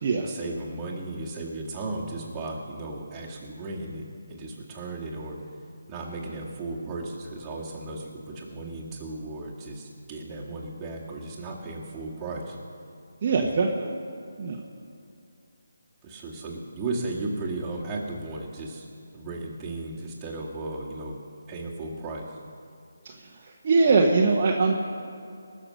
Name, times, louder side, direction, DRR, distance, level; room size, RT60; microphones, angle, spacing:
voice 1, 0.2-5.4 5.9-12.6 13.4-13.6 16.0-18.9 19.1-21.2 21.5-22.4, right 2 dB, 15° right, -5 dB, 2.2 m, -35 dB
voice 2, 13.2-13.9 14.4-14.6 23.0-23.1 23.6-24.7, right 4 dB, 40° right, -1 dB, 1.2 m, -21 dB
20.0 x 6.7 x 6.6 m, 2.5 s
figure-of-eight pair, 155°, 0 cm